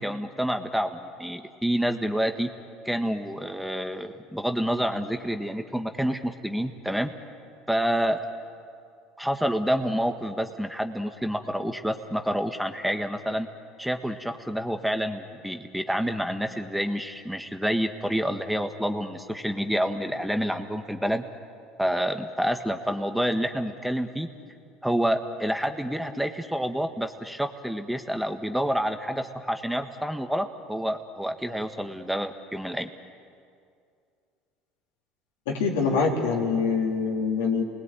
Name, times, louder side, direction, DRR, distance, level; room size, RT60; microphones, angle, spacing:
voice 1, 0.0-2.5 2.8-7.1 7.7-8.2 9.2-13.5 13.8-21.2 21.8-24.3 24.8-32.9, equal, ahead, 6 dB, 1.6 m, -28 dB
voice 2, 35.5-37.6, left 5 dB, 85° left, 0 dB, 4.0 m, -24 dB
28.5 x 20.5 x 9.1 m, 2.3 s
supercardioid pair, 85°, 0 cm